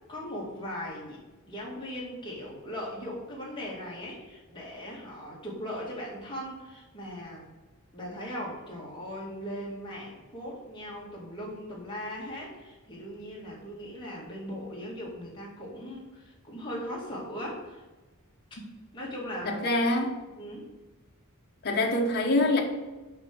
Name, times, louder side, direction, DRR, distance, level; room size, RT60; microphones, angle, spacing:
voice 1, 0.1-1.2 1.5-7.5 7.9-17.8 18.9-19.7 20.4-20.7, equal, 20° left, 2.2 m, -39 dB
voice 2, 19.5-20.2 21.6-22.6, left 2 dB, 45° left, 1.0 m, -25 dB
5.9 x 5.5 x 6.0 m
head